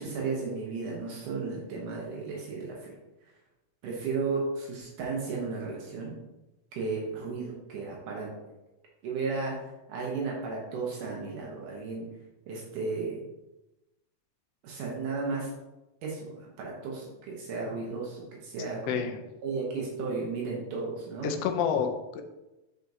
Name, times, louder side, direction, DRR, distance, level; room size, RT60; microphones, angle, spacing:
voice 1, 0.0-3.0 3.8-6.2 6.7-8.3 9.0-9.6 9.9-12.1 12.5-13.2 14.6-15.5 16.0-19.1 19.4-21.3, right 4 dB, 80° right, -2 dB, 2.6 m, -34 dB
voice 2, 18.9-19.2 21.2-22.2, left 7 dB, 90° left, 5 dB, 1.4 m, -28 dB
8.8 x 4.8 x 2.7 m, 0.98 s
omnidirectional pair, 3.6 m